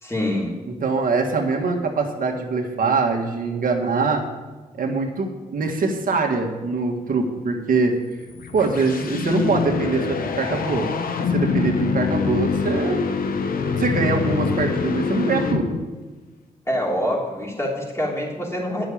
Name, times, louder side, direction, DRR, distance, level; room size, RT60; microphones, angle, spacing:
voice 1, 0.0-0.6 16.7-18.9, left 1 dB, 20° left, -2 dB, 3.3 m, -25 dB
voice 2, 0.7-4.3 4.8-8.0 8.5-10.9 11.2-13.0 13.8-15.8, right 4 dB, 65° right, 2 dB, 1.7 m, -23 dB
sound 1, 8.2-16.0, left 5 dB, 75° left, 0.9 m, -25 dB
9.5 x 6.2 x 8.6 m, 1.3 s
cardioid pair, 60°, 15 cm